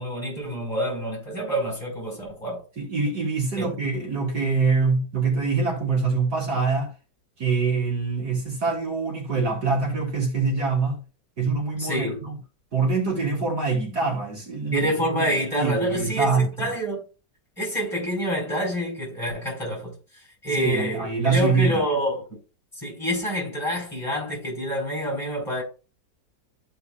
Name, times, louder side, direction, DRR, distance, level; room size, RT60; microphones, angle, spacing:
voice 1, 0.0-2.6 3.6-3.7 11.8-12.3 14.7-17.0 17.6-22.4 22.7-25.6, equal, 15° left, 4.8 m, -27 dB
voice 2, 2.8-6.9 7.4-11.0 11.4-12.4 12.7-16.7 20.5-21.8, right 4 dB, 60° right, 3.5 m, -24 dB
13.5 x 5.5 x 2.4 m
omnidirectional pair, 1.9 m